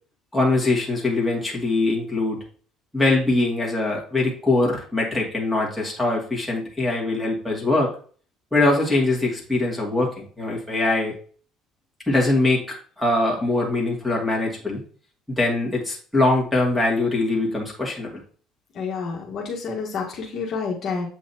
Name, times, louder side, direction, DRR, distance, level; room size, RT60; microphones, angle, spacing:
voice 1, 0.3-2.4 2.9-7.9 8.5-11.2 12.1-12.6 13.0-14.8 15.3-18.1, left 2 dB, ahead, -5 dB, 2.5 m, -22 dB
voice 2, 18.7-21.1, left 5 dB, 50° left, -2 dB, 1.5 m, -29 dB
7.7 x 5.5 x 2.9 m, 0.42 s
cardioid pair, 135°, 0 cm